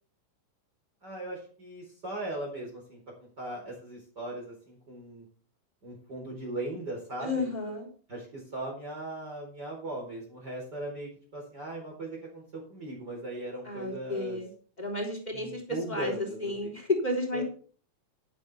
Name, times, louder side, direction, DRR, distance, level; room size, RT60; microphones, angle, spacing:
voice 1, 1.0-5.2 5.8-7.5 8.1-14.4 15.3-16.7 17.3-17.4, right 2 dB, 30° right, -3 dB, 4.7 m, -39 dB
voice 2, 7.2-7.9 13.6-14.5 14.8-15.6 15.9-17.4, left 2 dB, 15° left, 2 dB, 3.5 m, -32 dB
12.5 x 11.5 x 3.5 m, 0.42 s
omnidirectional pair, 3.5 m